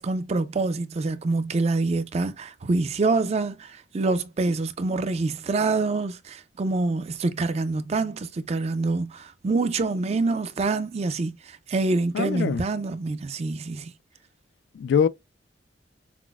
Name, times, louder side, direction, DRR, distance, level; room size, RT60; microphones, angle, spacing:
voice 1, 0.0-13.9, right 3 dB, 35° right, 0.4 m, -26 dB
voice 2, 12.1-12.6 14.7-15.1, left 7 dB, 70° left, 0.3 m, -23 dB
5.9 x 2.0 x 2.2 m
head